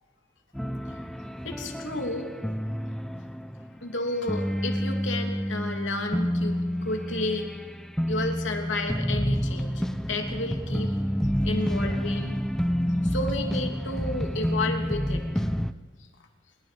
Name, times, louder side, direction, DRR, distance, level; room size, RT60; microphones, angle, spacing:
sound 1, 0.5-3.9 4.2-15.7, equal, 5° left, 0.7 m, -29 dB
voice 1, 1.4-2.3 3.8-7.5 8.1-11.0 11.4-12.4 13.0-15.4, left 2 dB, 80° left, 3 dB, 3.1 m, -32 dB
26.5 x 21.5 x 5.3 m, 1.4 s
head